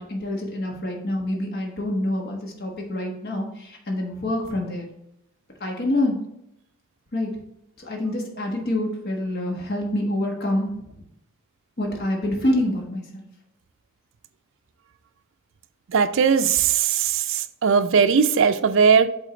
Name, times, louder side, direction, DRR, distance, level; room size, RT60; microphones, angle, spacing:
voice 1, 0.0-4.9 5.6-6.2 7.1-7.3 7.8-10.7 11.8-13.2, left 1 dB, 50° left, 1.4 m, -26 dB
voice 2, 15.9-19.1, right 6 dB, 65° right, 0.4 m, -19 dB
8.3 x 3.8 x 3.8 m
head